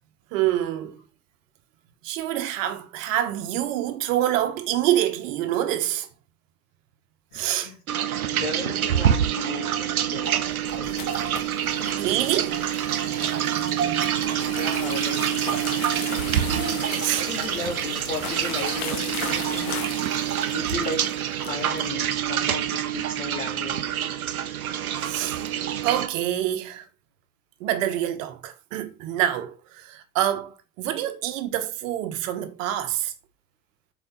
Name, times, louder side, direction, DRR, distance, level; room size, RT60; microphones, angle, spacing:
voice 1, 0.3-1.0 2.0-6.1 7.3-7.7 11.9-12.7 13.1-14.5 17.0-17.3 25.0-25.5 25.8-26.9 27.6-33.1, right 12 dB, 65° right, 1.2 m, -27 dB
voice 2, 7.3-7.8 8.3-10.3 10.7-11.2 14.4-15.2 16.4-19.7 20.5-23.9, left 3 dB, 70° left, 2.5 m, -36 dB
sound 1, 7.9-26.1, right 10 dB, 85° right, 0.7 m, -26 dB
sound 2, 10.1-21.8, left 7 dB, 55° left, 1.6 m, -37 dB
8.0 x 4.6 x 3.6 m
figure-of-eight pair, 65°, 42 cm